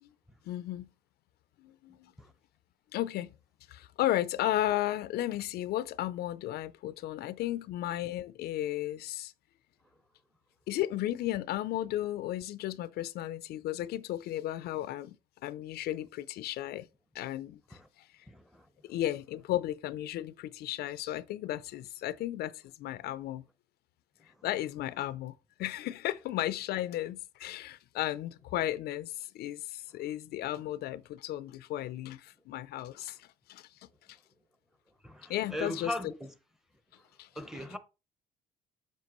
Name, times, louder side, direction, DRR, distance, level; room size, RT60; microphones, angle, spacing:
voice 1, 0.5-0.9 1.6-2.1 2.9-3.3 3.7-9.3 10.7-15.2 15.4-16.9 17.1-17.6 18.0-18.1 18.8-23.4 24.4-33.7 35.3-35.9 37.2-37.3, left 14 dB, 70° left, 0.4 m, -34 dB
voice 2, 18.3-18.7 35.0-36.3 37.4-37.8, left 1 dB, ahead, 0.8 m, -39 dB
7.3 x 5.8 x 3.0 m
cardioid pair, 110°, 17 cm